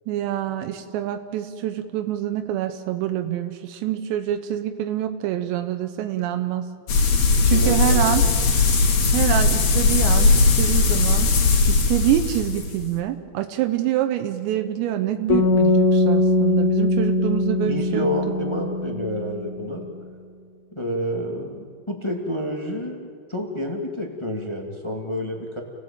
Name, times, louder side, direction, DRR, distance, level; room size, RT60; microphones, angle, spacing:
voice 1, 0.1-6.7 7.4-8.2 9.1-11.3 11.7-18.1, right 12 dB, 85° right, 7 dB, 3.1 m, -26 dB
sound 1, 6.9-12.9, left 3 dB, 50° left, 3.1 m, -19 dB
voice 2, 7.5-8.5 17.4-19.9 20.7-25.6, equal, 15° left, 1 dB, 1.1 m, -29 dB
sound 2, 15.3-19.5, left 2 dB, 90° left, 6.0 m, -21 dB
29.5 x 17.5 x 8.9 m, 2.1 s
omnidirectional pair, 4.9 m